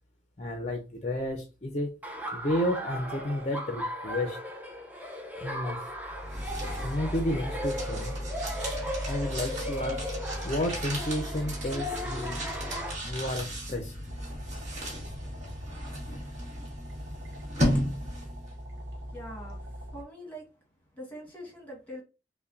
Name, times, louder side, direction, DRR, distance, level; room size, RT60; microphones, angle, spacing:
voice 1, 0.4-1.9 2.3-4.4 5.4-5.8 6.8-8.2 9.1-10.1 10.4-12.5 13.0-13.9, left 1 dB, 35° left, 3 dB, 0.5 m, -31 dB
Laughter, 2.0-12.9, equal, 10° right, 0.6 m, -37 dB
sound 1, 6.0-18.5, equal, 40° right, 1.5 m, -34 dB
sound 2, 14.1-20.0, equal, 80° right, 0.6 m, -42 dB
voice 2, 19.1-19.6 19.9-20.5 21.0-22.0, equal, 10° left, -1 dB, 1.4 m, -43 dB
5.4 x 2.2 x 2.5 m, 0.31 s
head